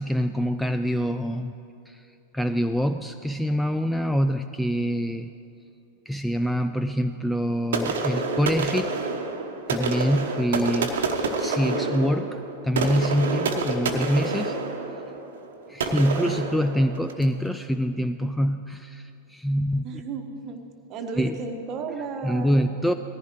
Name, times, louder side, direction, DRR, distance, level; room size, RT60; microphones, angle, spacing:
voice 1, 0.0-1.5 1.9-2.0 2.3-5.3 6.1-8.9 9.7-10.9 11.4-14.6 15.7-19.9 21.2-21.4 22.2-22.9, equal, 5° left, 8 dB, 0.3 m, -25 dB
sound 1, 7.7-17.4, right 3 dB, 60° right, 1.1 m, -28 dB
voice 2, 19.8-20.6 20.9-22.9, right 4 dB, 35° right, 6 dB, 1.2 m, -34 dB
18.5 x 14.5 x 3.1 m, 2.7 s
figure-of-eight pair, 90°, 0 cm